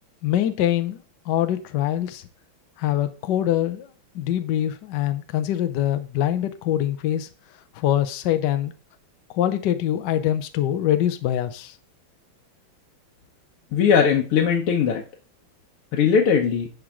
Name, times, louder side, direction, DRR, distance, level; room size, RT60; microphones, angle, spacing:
voice 1, 0.2-1.0 1.3-2.2 2.8-3.9 4.1-7.3 7.7-8.7 9.3-11.7, left 11 dB, 65° left, 10 dB, 1.2 m, -24 dB
voice 2, 13.7-15.0 15.9-16.7, left 7 dB, 90° left, 0 dB, 1.9 m, -19 dB
11.5 x 4.6 x 3.7 m, 0.34 s
omnidirectional pair, 2.3 m